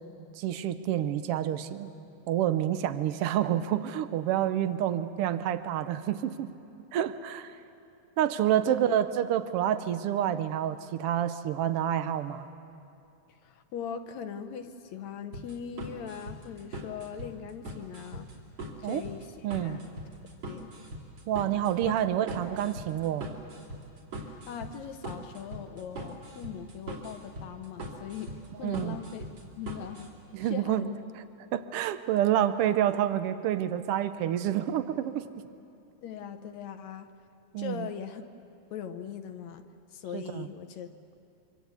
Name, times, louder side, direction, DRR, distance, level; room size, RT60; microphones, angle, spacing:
voice 1, 0.4-1.9 2.3-6.5 6.9-7.6 8.2-12.5 18.8-19.0 19.4-19.8 21.3-23.3 28.6-29.0 30.3-30.9 31.5-35.3 37.5-37.9 40.1-40.5, right 11 dB, 85° right, 11 dB, 1.3 m, -28 dB
voice 2, 8.7-9.0 13.4-18.3 18.8-19.9 20.5-20.7 21.9-22.0 24.2-29.3 29.6-30.1 30.4-31.0 36.0-37.1 37.6-38.2 38.7-39.6 39.9-40.9, left 8 dB, 70° left, 8 dB, 2.0 m, -40 dB
sound 1, 15.3-30.1, right 1 dB, 50° right, 4.0 m, -41 dB
26.0 x 25.0 x 8.2 m, 2.6 s
omnidirectional pair, 3.6 m